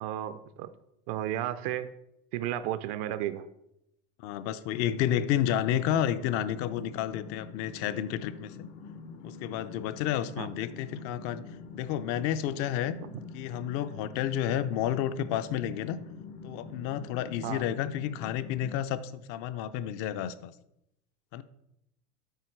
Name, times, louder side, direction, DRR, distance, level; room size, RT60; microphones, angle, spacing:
voice 1, 0.0-0.7 1.1-1.9 2.3-3.5 10.4-10.5 17.4-17.6, right 12 dB, 55° right, 11 dB, 0.4 m, -33 dB
voice 2, 4.2-8.7 9.2-11.4 11.7-13.0 13.3-16.0 16.4-20.5 21.3-21.4, left 10 dB, 45° left, 13 dB, 0.4 m, -31 dB
sound 1, 4.7-18.8, left 4 dB, 75° left, 0.9 m, -46 dB
8.3 x 4.6 x 4.4 m, 0.81 s
supercardioid pair, 150°, 34 cm